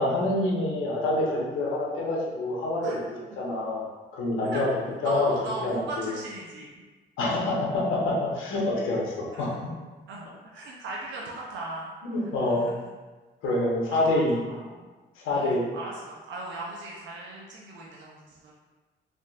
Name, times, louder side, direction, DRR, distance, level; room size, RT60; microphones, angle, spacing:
voice 1, 0.0-3.1 3.4-3.8 4.2-5.3 5.6-6.2 7.2-9.6 12.0-12.7 13.4-14.4 15.2-15.7, left 2 dB, 80° left, -5 dB, 0.9 m, -26 dB
voice 2, 5.0-6.8 9.3-9.5 10.1-11.9 12.5-12.7 14.5-14.8 15.3-18.5, right 2 dB, 70° right, -4 dB, 0.6 m, -38 dB
3.5 x 2.6 x 2.4 m, 1.3 s
cardioid pair, 90°, 20 cm